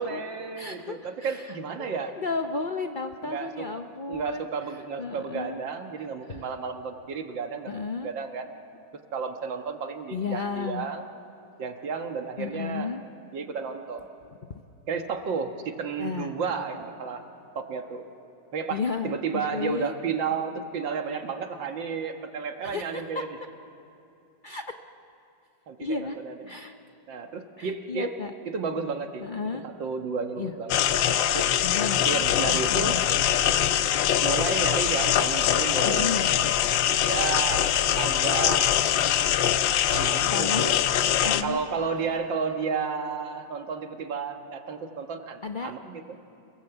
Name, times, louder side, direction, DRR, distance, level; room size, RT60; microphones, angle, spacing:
voice 1, 0.0-2.1 3.2-3.7 4.1-7.7 8.0-8.5 9.1-11.1 11.6-12.9 13.3-14.1 14.9-17.2 17.6-18.0 18.5-23.3 25.7-26.3 27.1-28.2 28.5-30.8 31.3-31.5 32.0-33.0 34.2-36.3 37.0-38.7 39.9-40.8 41.2-46.2, right 5 dB, 90° right, 5 dB, 2.2 m, -32 dB
voice 2, 0.6-4.5 5.0-5.6 6.3-6.4 7.7-8.1 10.1-10.9 12.4-13.0 14.5-14.6 16.0-16.3 18.7-19.9 22.6-23.2 24.4-24.7 25.8-26.2 26.5-26.7 27.6-28.3 29.2-29.6 30.4-30.5 31.6-33.0 35.9-36.3 40.3-40.7 41.2-41.6 45.4-45.7, left 5 dB, 70° left, 6 dB, 0.4 m, -33 dB
sound 1, 30.7-41.4, left 10 dB, 85° left, 1.5 m, -23 dB
28.0 x 19.0 x 8.0 m, 2.9 s
omnidirectional pair, 2.0 m